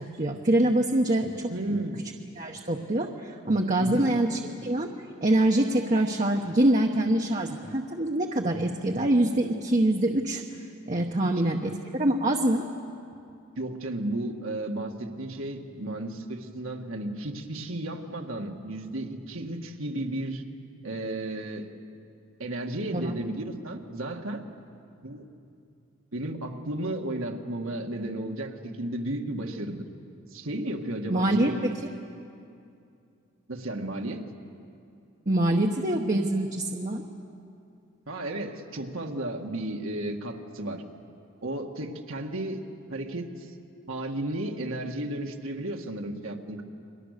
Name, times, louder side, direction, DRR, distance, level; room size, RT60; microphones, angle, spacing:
voice 1, 0.0-1.8 2.4-4.9 5.2-10.4 10.9-12.7 22.9-23.1 31.1-31.5 35.3-37.0, right 1 dB, 35° right, 1 dB, 1.1 m, -25 dB
voice 2, 1.5-2.1 3.8-4.1 13.6-20.4 20.8-21.7 22.4-24.4 25.0-25.3 26.1-29.8 30.3-31.5 33.5-34.2 38.1-40.8 41.4-42.6 42.9-43.5 43.9-46.6, right 1 dB, 70° right, 2 dB, 1.9 m, -33 dB
30.0 x 23.5 x 6.7 m, 2.5 s
head